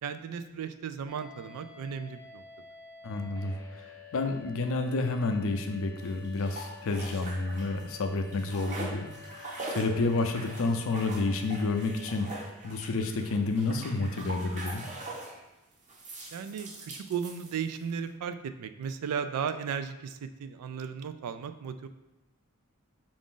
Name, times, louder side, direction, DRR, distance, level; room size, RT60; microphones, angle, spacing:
voice 1, 0.0-2.4 16.3-21.9, right 7 dB, 90° right, 10 dB, 0.3 m, -35 dB
sound 1, 1.1-12.2, left 6 dB, 15° left, 0.5 m, -50 dB
voice 2, 3.0-3.9 4.1-14.8, left 3 dB, 65° left, 5 dB, 0.4 m, -30 dB
sound 2, 6.0-7.9 8.2-15.4 15.9-17.9, right 2 dB, 35° right, 0.7 m, -42 dB
4.9 x 2.5 x 3.7 m, 0.99 s
head